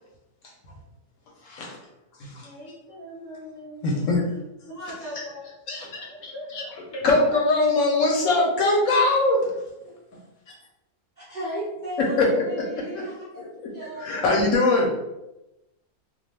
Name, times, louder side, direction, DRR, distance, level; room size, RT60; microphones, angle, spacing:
voice 1, 1.4-1.8 2.2-2.5 3.8-4.2 5.7-6.6 7.0-9.5 12.0-13.1 13.4-13.5 14.0-14.9, left 2 dB, 70° left, -2 dB, 0.8 m, -22 dB
voice 2, 2.4-4.4 4.7-5.4 6.1-7.5, equal, 10° left, -8 dB, 0.9 m, -40 dB
voice 3, 11.2-13.4 13.7-14.5, right 1 dB, 90° right, -7 dB, 0.4 m, -35 dB
2.3 x 2.2 x 3.1 m, 0.95 s
omnidirectional pair, 1.6 m